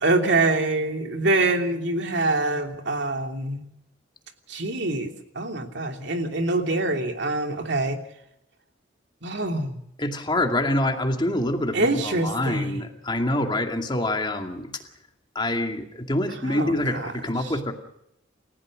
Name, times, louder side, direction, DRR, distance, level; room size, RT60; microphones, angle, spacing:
voice 1, 0.0-3.6 4.5-8.0 9.2-9.8 11.7-12.8 16.4-17.1 17.4-17.5, right 2 dB, 65° right, 4 dB, 3.0 m, -25 dB
voice 2, 10.0-14.7 15.3-17.7, left 1 dB, 25° left, 4 dB, 2.4 m, -26 dB
29.5 x 15.5 x 6.5 m, 0.79 s
head